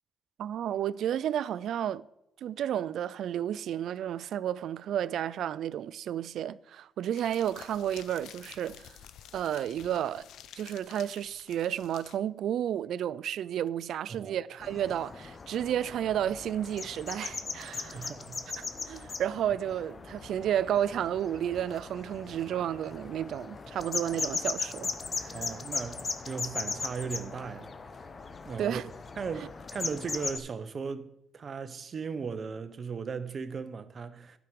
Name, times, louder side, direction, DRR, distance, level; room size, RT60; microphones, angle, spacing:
voice 1, 0.4-2.1 2.4-9.0 9.3-10.2 10.6-18.1 18.6-24.9 25.2-25.4 28.6-28.8, right 10 dB, 75° right, 0.3 m, -32 dB
sound 1, 7.1-12.2, left 10 dB, 80° left, 0.5 m, -51 dB
sound 2, 14.6-30.4, left 4 dB, 35° left, 0.8 m, -38 dB
voice 2, 17.9-18.4 25.3-27.7 28.4-28.8 29.2-34.4, right 5 dB, 45° right, 0.7 m, -37 dB
11.0 x 6.1 x 5.1 m
cardioid pair, 90°, 0 cm